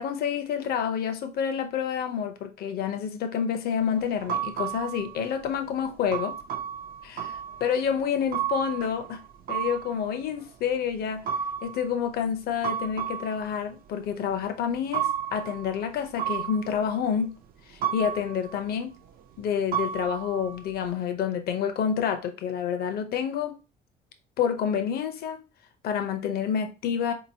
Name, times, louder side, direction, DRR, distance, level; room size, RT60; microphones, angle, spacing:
voice 1, 0.0-6.3 7.0-9.2 9.5-11.2 11.6-17.3 17.7-18.9 19.4-23.6 24.4-25.4 25.8-27.1, left 7 dB, 65° left, 0.7 m, -28 dB
sound 1, 3.9-5.4 6.1-10.4 11.3-12.0 12.6-13.5 14.9-15.9 16.2-17.0 17.8-18.6 19.7-20.8, right 9 dB, 60° right, 0.5 m, -32 dB
3.7 x 2.9 x 2.8 m
cardioid pair, 110°, 17 cm